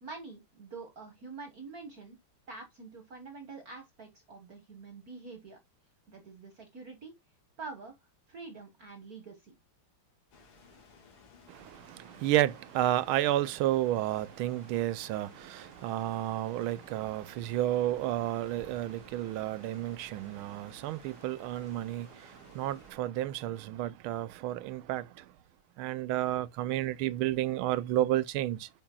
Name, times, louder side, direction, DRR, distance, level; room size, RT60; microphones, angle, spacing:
voice 1, 0.0-2.2 2.5-5.6 6.1-7.1 7.6-8.0 8.3-9.5, right 4 dB, 50° right, 1.5 m, -46 dB
sound 1, 10.3-22.9, left 4 dB, 85° left, 2.8 m, -57 dB
voice 2, 11.5-25.3 25.8-28.7, right 14 dB, 80° right, 1.4 m, -31 dB
8.6 x 5.9 x 2.2 m
omnidirectional pair, 2.4 m